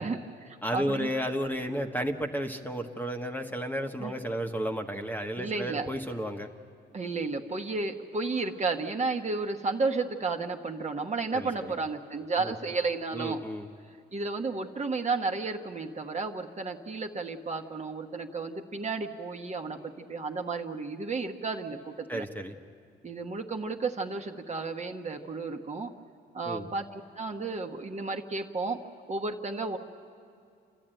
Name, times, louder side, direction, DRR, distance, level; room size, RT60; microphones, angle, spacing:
voice 1, 0.0-1.1 4.0-4.1 5.4-5.9 6.9-13.4 14.1-22.3 23.0-25.9 26.3-28.8 29.1-29.8, right 3 dB, 35° right, 2 dB, 1.3 m, -32 dB
voice 2, 0.6-6.5 11.3-11.7 12.4-12.5 13.1-13.7 22.1-22.5 26.4-26.7, equal, 10° left, 4 dB, 1.2 m, -33 dB
28.5 x 13.0 x 9.0 m, 2.4 s
cardioid pair, 90°, 20 cm